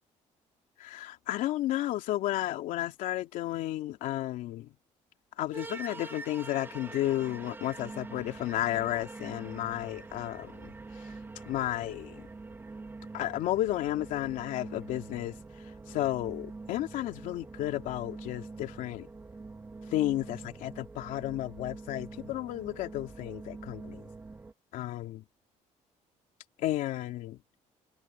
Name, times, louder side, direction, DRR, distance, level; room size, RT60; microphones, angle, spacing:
voice 1, 0.8-4.7 5.4-10.7 11.5-12.2 13.1-15.3 15.9-19.1 19.9-24.1 24.7-25.2 26.6-27.4, left 14 dB, 85° left, 2.9 m, -32 dB
sound 1, 5.5-24.5, right 3 dB, 15° right, 2.9 m, -45 dB
cardioid pair, 160°, 13 cm